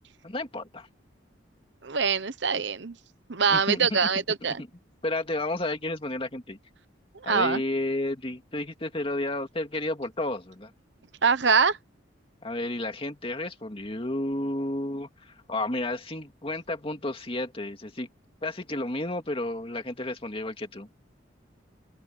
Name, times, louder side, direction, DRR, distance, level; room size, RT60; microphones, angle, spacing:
voice 1, 0.2-0.9 3.5-4.0 5.0-6.6 7.3-10.7 12.4-18.1 18.4-20.9, left 1 dB, 30° left, 2.4 m, -31 dB
voice 2, 1.8-2.9 3.3-4.6 7.2-7.6 11.2-11.8, right 5 dB, 65° right, 1.0 m, -24 dB
open air
head